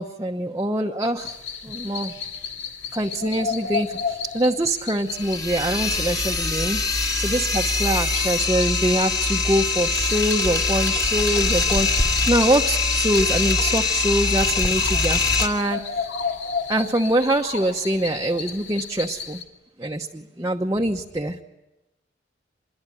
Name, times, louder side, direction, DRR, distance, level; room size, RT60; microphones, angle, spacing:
voice 1, 0.0-1.4 1.6-2.1 2.9-6.8 7.2-16.1 16.7-19.4 19.8-21.4, right 1 dB, 20° right, 1 dB, 1.0 m, -24 dB
sound 1, 1.2-19.4, left 6 dB, 80° left, 2.7 m, -34 dB
sound 2, 5.1-15.5, left 3 dB, 20° left, 2.1 m, -23 dB
26.0 x 22.0 x 9.9 m, 1.0 s
head